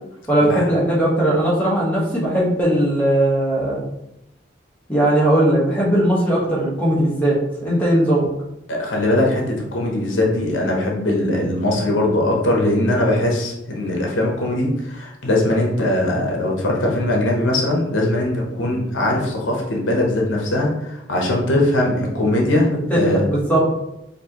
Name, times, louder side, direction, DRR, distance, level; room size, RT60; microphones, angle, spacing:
voice 1, 0.3-3.8 4.9-8.3 22.7-23.6, right 1 dB, 10° left, -7 dB, 1.1 m, -18 dB
voice 2, 8.7-23.2, left 1 dB, 85° left, -1 dB, 0.9 m, -20 dB
4.5 x 2.8 x 2.9 m, 0.86 s
head